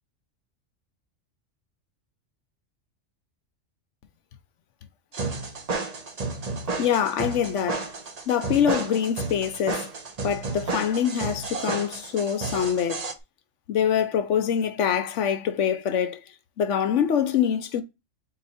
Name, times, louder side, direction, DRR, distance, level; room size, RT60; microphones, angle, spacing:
sound 1, 5.1-13.1, right 3 dB, 35° right, 0.7 m, -32 dB
voice 1, 6.8-7.8 8.3-9.9 10.2-13.1 13.7-16.2 16.6-17.8, left 8 dB, 70° left, 1.0 m, -24 dB
4.1 x 2.9 x 4.1 m
omnidirectional pair, 1.3 m